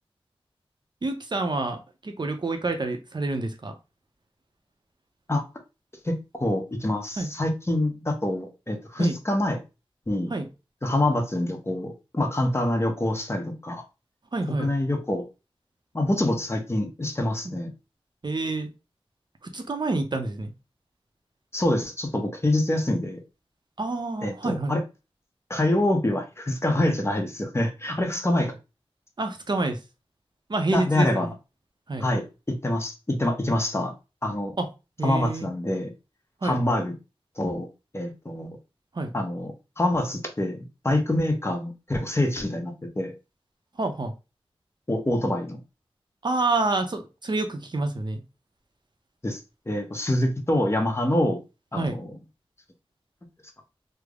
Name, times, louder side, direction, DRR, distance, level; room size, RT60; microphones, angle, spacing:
voice 1, 1.0-3.7 7.2-7.3 9.0-9.2 10.3-10.5 14.3-14.7 18.2-18.7 19.4-20.5 23.8-24.7 29.2-29.8 30.5-31.3 31.9-32.1 34.6-34.7 35.0-35.5 36.4-36.6 38.9-39.1 43.8-44.1 46.2-48.2 51.8-52.0, right 2 dB, 50° right, 5 dB, 0.6 m, -28 dB
voice 2, 6.0-9.6 10.1-10.3 10.8-13.8 14.6-15.3 15.9-17.7 21.5-23.2 24.2-24.8 25.5-28.6 30.7-31.3 32.0-33.9 34.2-34.5 35.0-35.9 36.4-36.9 37.4-37.7 37.9-38.6 39.1-43.1 44.9-45.6 49.2-49.4 49.7-51.4 51.7-52.1, left 1 dB, 25° left, 4 dB, 0.7 m, -26 dB
3.4 x 2.0 x 3.5 m, 0.28 s
wide cardioid pair, 70°, 10 cm